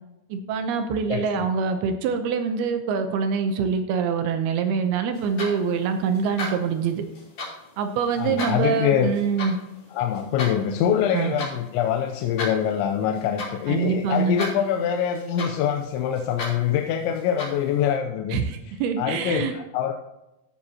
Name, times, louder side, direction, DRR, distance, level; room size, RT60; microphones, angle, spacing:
voice 1, 0.3-7.0 7.8-9.6 11.1-11.3 13.7-14.4 18.3-19.6, right 6 dB, 75° right, 7 dB, 2.4 m, -25 dB
voice 2, 1.1-1.5 8.2-9.1 9.9-18.4 19.0-19.9, left 9 dB, 90° left, 4 dB, 3.0 m, -24 dB
sound 1, 5.1-17.9, left 1 dB, 40° left, 4.2 m, -37 dB
14.5 x 8.5 x 2.9 m, 0.94 s
omnidirectional pair, 5.1 m